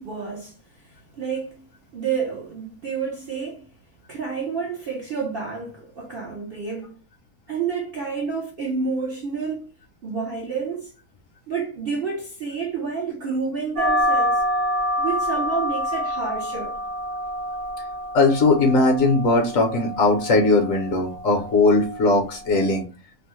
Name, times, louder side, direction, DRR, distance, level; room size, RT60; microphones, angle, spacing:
voice 1, 0.0-1.6 1.9-3.7 4.1-7.0 7.5-9.7 10.0-10.9 11.5-14.4 15.0-16.8, right 5 dB, 55° right, 0.6 m, -29 dB
sound 1, 13.8-22.8, equal, 85° right, 1.4 m, -27 dB
voice 2, 18.1-22.8, left 3 dB, 60° left, 1.0 m, -19 dB
3.3 x 2.0 x 3.0 m
omnidirectional pair, 1.7 m